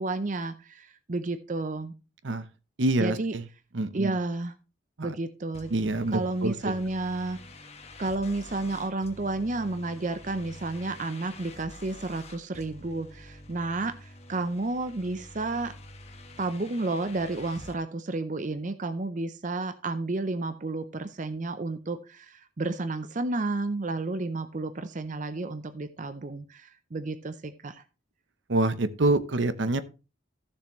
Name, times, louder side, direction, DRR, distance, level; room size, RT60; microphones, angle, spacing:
voice 1, 0.0-1.9 3.0-3.3 3.9-4.5 5.0-5.7 6.1-7.4 8.0-15.7 16.4-27.8, right 2 dB, 40° right, 10 dB, 0.6 m, -31 dB
voice 2, 2.8-3.4 3.7-4.2 5.0-5.1 5.7-6.7 28.5-29.8, right 2 dB, 70° right, 13 dB, 0.8 m, -26 dB
sound 1, 5.5-17.8, left 1 dB, 35° left, 1.2 m, -47 dB
14.5 x 7.0 x 3.1 m, 0.31 s
head